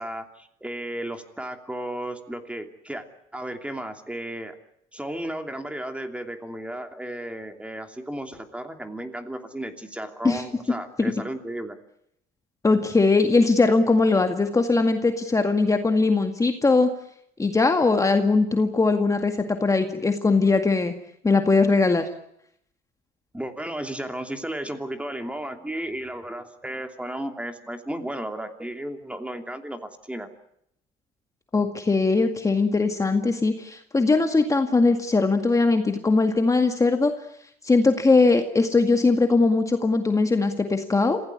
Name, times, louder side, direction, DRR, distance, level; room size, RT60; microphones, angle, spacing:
voice 1, 0.0-3.0 3.3-4.5 4.9-11.7 23.3-30.3, right 1 dB, 5° right, 6 dB, 2.9 m, -34 dB
voice 2, 12.6-16.9 17.4-20.9 21.2-22.1 31.5-37.1 37.6-41.2, left 3 dB, 20° left, 6 dB, 2.0 m, -20 dB
26.5 x 16.5 x 9.7 m, 0.74 s
cardioid pair, 110°, 17 cm